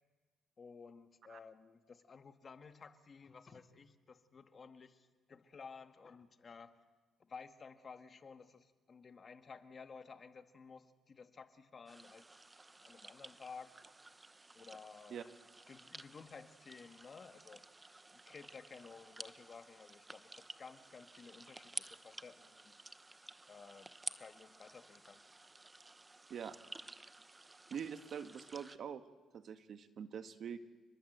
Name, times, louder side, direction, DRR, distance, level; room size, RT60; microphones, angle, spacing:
voice 1, 0.6-6.8 7.2-12.3 12.8-13.7 14.5-15.3 15.7-17.6 18.1-22.7 23.5-23.9 24.2-25.2, left 5 dB, 40° left, 8 dB, 1.8 m, -54 dB
sound 1, 11.9-28.8, right 2 dB, 20° right, 1.0 m, -53 dB
voice 2, 27.7-29.0 29.3-30.6, right 7 dB, 60° right, 9 dB, 1.6 m, -44 dB
29.5 x 21.0 x 8.1 m, 1.3 s
cardioid pair, 90°, 0 cm